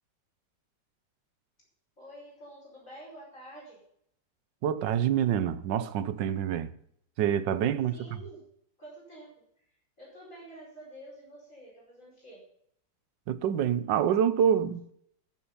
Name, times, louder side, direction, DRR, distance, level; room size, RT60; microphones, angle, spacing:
voice 1, 2.0-3.8 7.9-8.4 8.8-9.3 10.0-12.4, right 1 dB, 45° left, 5.4 m, -48 dB
voice 2, 4.6-6.7 7.2-8.2 13.3-14.9, right 9 dB, 75° right, 1.4 m, -27 dB
14.5 x 7.0 x 5.5 m
omnidirectional pair, 2.0 m